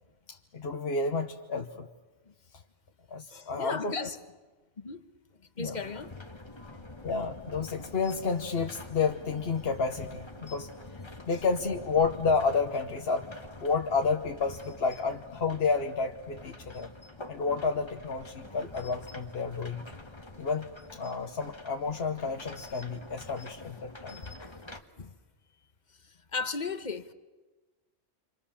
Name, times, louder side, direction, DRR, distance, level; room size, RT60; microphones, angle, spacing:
voice 1, 0.3-1.9 3.1-4.1 5.6-5.8 7.0-10.7 11.3-13.3 13.6-16.9 17.3-19.8 20.4-24.2, left 4 dB, 55° left, 1.3 m, -30 dB
voice 2, 3.3-4.2 4.8-5.1 5.6-6.1 6.6-6.8 24.4-24.6 25.0-25.1 26.3-27.1, left 4 dB, 40° left, 1.2 m, -36 dB
sound 1, 5.8-24.8, left 2 dB, 25° left, 1.4 m, -47 dB
28.0 x 25.5 x 7.2 m
omnidirectional pair, 1.2 m